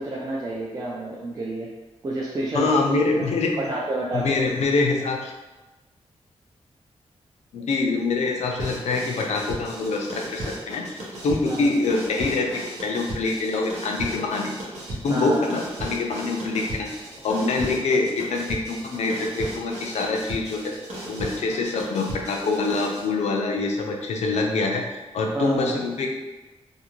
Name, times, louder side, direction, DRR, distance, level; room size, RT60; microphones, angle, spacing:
voice 1, 0.0-1.7 2.0-3.0 3.6-4.3 11.5-11.7 15.1-15.6 25.3-25.8, right 1 dB, 30° right, -4 dB, 0.4 m, -29 dB
voice 2, 2.5-3.7 4.1-5.3 7.5-10.9 11.2-14.5 14.9-16.9 17.2-20.7 21.1-24.8 25.1-26.2, left 3 dB, 85° left, 1 dB, 0.4 m, -25 dB
sound 1, 8.6-23.1, right 1 dB, 85° right, 0.8 m, -36 dB
2.5 x 2.5 x 2.9 m, 1.1 s
wide cardioid pair, 125°, 11 cm